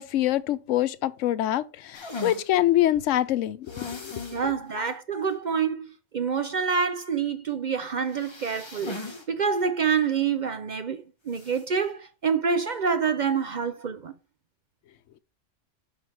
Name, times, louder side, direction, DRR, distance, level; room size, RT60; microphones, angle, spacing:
voice 1, 0.0-4.2, left 13 dB, 90° left, 0.9 m, -25 dB
sound 1, 1.9-2.5 3.7-4.4 4.8-4.9 5.3-5.4 8.1-9.3 9.6-9.7 11.3-11.6, left 3 dB, 25° left, 1.1 m, -38 dB
voice 2, 4.3-14.1, right 6 dB, 50° right, 0.6 m, -27 dB
5.8 x 5.7 x 4.7 m
omnidirectional pair, 1.2 m